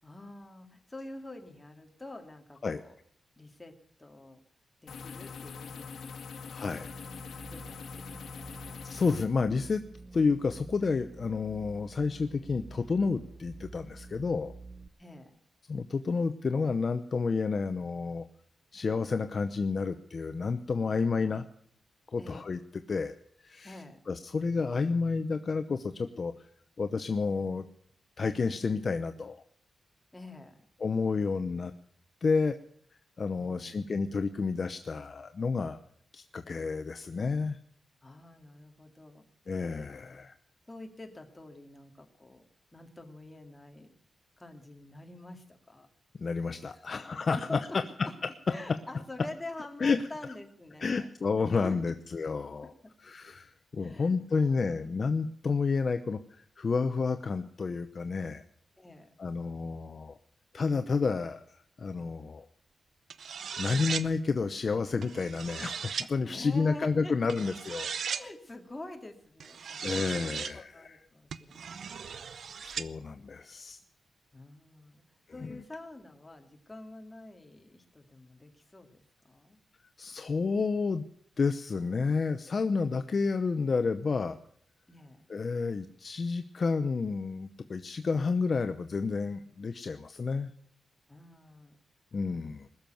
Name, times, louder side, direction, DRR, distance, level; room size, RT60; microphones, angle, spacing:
voice 1, 0.0-2.9 3.4-4.4 4.8-6.6 7.5-8.8 15.0-15.4 22.2-22.4 23.6-24.0 30.1-30.7 33.4-34.3 38.0-39.3 40.0-40.3 40.7-42.4 42.7-43.9 44.4-45.9 46.7-46.8 47.4-48.1 48.5-51.1 51.6-51.8 52.6-52.9 53.8-55.1 58.8-59.1 66.2-67.4 68.1-72.3 74.3-75.0 75.3-79.6 84.9-85.3 91.1-91.8 92.4-92.7, left 2 dB, 15° left, 4 dB, 2.2 m, -47 dB
sound 1, 4.9-9.3, left 5 dB, 75° left, 1.7 m, -43 dB
voice 2, 6.5-6.9 8.8-9.8 10.1-14.5 15.7-18.3 18.7-21.4 22.1-22.6 22.9-23.1 23.4-23.7 24.1-26.3 26.8-27.7 28.2-29.4 30.8-31.7 32.2-32.6 33.2-35.8 36.1-37.6 39.5-40.3 46.2-48.1 49.8-50.0 50.8-52.7 53.0-58.4 59.2-60.2 60.5-62.5 63.6-67.9 69.8-71.0 72.6-73.8 75.4-75.6 80.0-81.0 81.4-84.4 85.3-90.5 92.1-92.7, left 4 dB, 45° left, 9 dB, 0.7 m, -30 dB
sound 2, 6.8-14.9, right 3 dB, 20° right, 0.7 m, -49 dB
sound 3, 63.1-64.1 65.0-66.1 67.3-68.3 69.4-70.5 71.3-72.9, right 6 dB, 65° right, 0.6 m, -37 dB
20.5 x 7.1 x 9.1 m, 0.63 s
wide cardioid pair, 110°, 0 cm